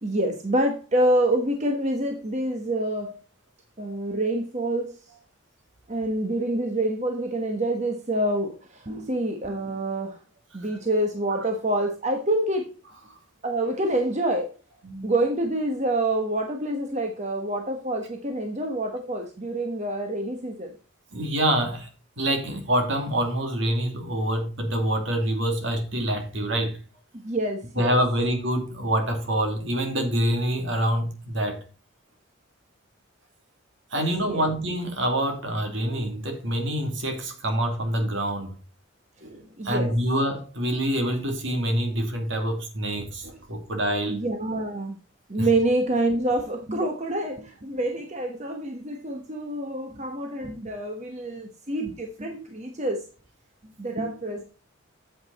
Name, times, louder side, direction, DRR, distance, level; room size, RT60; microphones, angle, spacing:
voice 1, 0.0-3.2 3.8-5.0 5.9-10.2 10.5-12.7 13.4-14.5 15.0-20.7 27.2-28.0 34.3-34.5 39.6-39.9 44.1-45.0 45.3-53.1 53.6-54.4, right 1 dB, 35° right, 1.1 m, -27 dB
voice 2, 21.1-21.9 22.2-26.8 27.8-31.6 33.9-38.5 39.2-44.2 45.4-45.5, right 1 dB, 60° right, 2.8 m, -26 dB
8.8 x 7.7 x 4.1 m
head